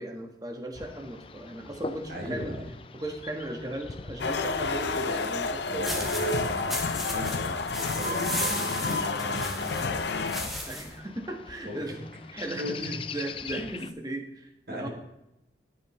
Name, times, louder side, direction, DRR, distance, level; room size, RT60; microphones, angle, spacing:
voice 1, 0.0-2.6 2.9-5.9 10.7-14.9, right 1 dB, 20° right, 3 dB, 1.4 m, -37 dB
sound 1, 0.7-13.9, left 4 dB, 30° left, 0.4 m, -44 dB
voice 2, 2.1-2.7 5.7-10.2 11.6-12.0 12.6-13.0 13.5-13.6 14.7-14.9, equal, 60° right, 0 dB, 3.3 m, -38 dB
sound 2, 4.2-10.6, left 3 dB, 75° left, 0.7 m, -30 dB
sound 3, 5.8-11.0, equal, ahead, 1.5 m, -36 dB
13.0 x 9.8 x 3.2 m, 0.86 s
head